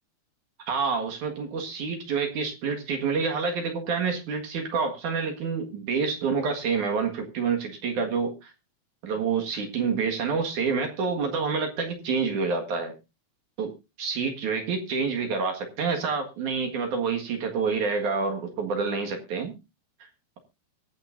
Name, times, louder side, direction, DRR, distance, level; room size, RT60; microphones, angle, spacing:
voice 1, 0.7-8.5 9.0-12.9 13.6-13.7 14.0-19.5, right 5 dB, 55° right, 4 dB, 2.6 m, -28 dB
23.5 x 8.0 x 2.6 m, 0.26 s
omnidirectional pair, 5.1 m